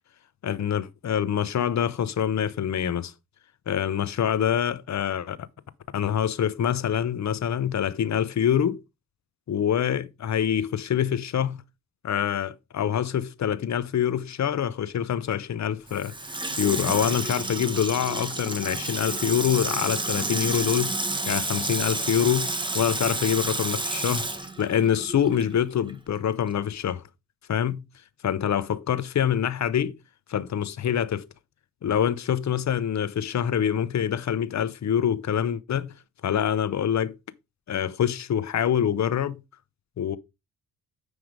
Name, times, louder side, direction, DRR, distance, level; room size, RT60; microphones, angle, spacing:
voice 1, 0.4-3.1 3.7-5.4 5.9-8.8 9.5-11.6 12.0-16.1 16.6-20.9 21.3-24.3 24.6-27.0 27.5-27.8 28.2-30.0 30.3-31.3 31.8-35.9 36.2-37.2 37.7-39.4 40.0-40.2, left 9 dB, 50° left, 0.8 m, -25 dB
Water tap faucet / Sink (filling or washing), 15.9-25.6 25.9-26.0, right 2 dB, 15° right, 1.1 m, -30 dB
9.6 x 3.5 x 5.0 m
cardioid pair, 95°, 34 cm